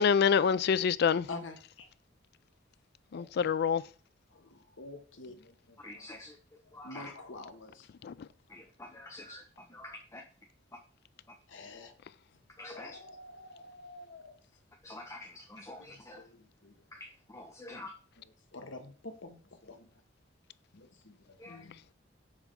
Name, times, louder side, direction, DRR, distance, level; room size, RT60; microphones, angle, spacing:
voice 1, 0.0-1.3 3.1-3.8 8.0-8.1, left 6 dB, 55° left, 0.3 m, -26 dB
voice 2, 3.1-3.5 4.8-5.4 6.8-7.7 11.5-11.9 12.7-14.3 16.2-16.3 16.6-16.7 18.5-19.4 19.7-19.8 20.7-21.1 21.5-21.7, left 2 dB, 75° left, 1.2 m, -46 dB
voice 3, 5.8-6.4 6.7-7.1 8.5-10.2 12.6-13.0 14.8-16.3 16.9-17.9 21.4-21.6, left 2 dB, 15° left, 0.7 m, -47 dB
7.2 x 3.4 x 5.3 m
head